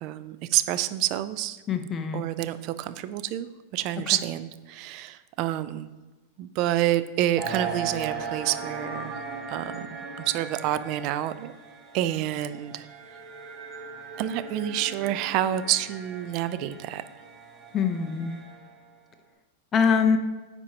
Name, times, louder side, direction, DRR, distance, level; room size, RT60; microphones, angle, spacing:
voice 1, 0.0-1.6 2.1-5.9 6.4-9.2 9.5-9.8 10.2-11.5 11.9-12.9 14.2-17.0, right 13 dB, 45° right, 13 dB, 0.4 m, -28 dB
voice 2, 1.7-2.2 4.1-4.2 17.7-18.4 19.7-20.2, left 6 dB, 25° left, 7 dB, 0.7 m, -24 dB
sound 1, 7.4-18.8, right 5 dB, 30° right, 1.2 m, -38 dB
9.5 x 4.3 x 2.8 m, 1.2 s
hypercardioid pair, 130°, 0 cm